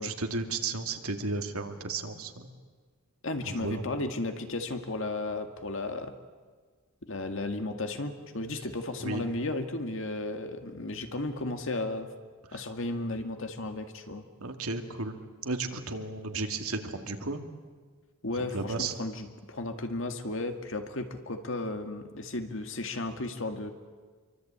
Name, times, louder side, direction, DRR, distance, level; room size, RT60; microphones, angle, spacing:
voice 1, 0.0-2.6 3.5-3.8 9.0-9.2 12.5-12.6 14.4-15.2 15.4-17.4 18.5-18.9, right 3 dB, 80° right, 5 dB, 2.3 m, -34 dB
voice 2, 3.2-6.1 7.1-12.1 12.5-14.3 18.2-23.7, left 2 dB, 60° left, 6 dB, 2.0 m, -34 dB
27.0 x 24.0 x 8.8 m, 1.5 s
head